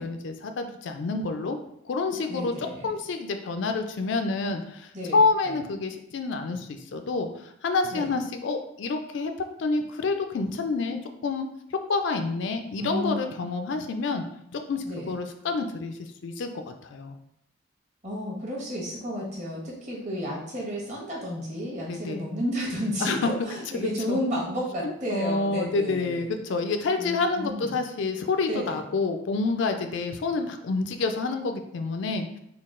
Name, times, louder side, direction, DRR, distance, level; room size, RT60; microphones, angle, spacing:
voice 1, 0.0-1.6 1.8-9.3 9.6-14.2 14.5-17.2 21.9-22.3 23.0-23.2 23.8-24.2 24.8-32.4, left 3 dB, 60° left, 6 dB, 0.4 m, -28 dB
voice 2, 2.3-2.9 4.9-5.2 5.4-5.6 7.9-8.1 12.8-13.2 14.8-15.2 18.0-26.3 27.0-27.8 28.5-28.8, equal, 35° right, -4 dB, 1.1 m, -32 dB
3.8 x 2.3 x 3.7 m, 0.77 s
head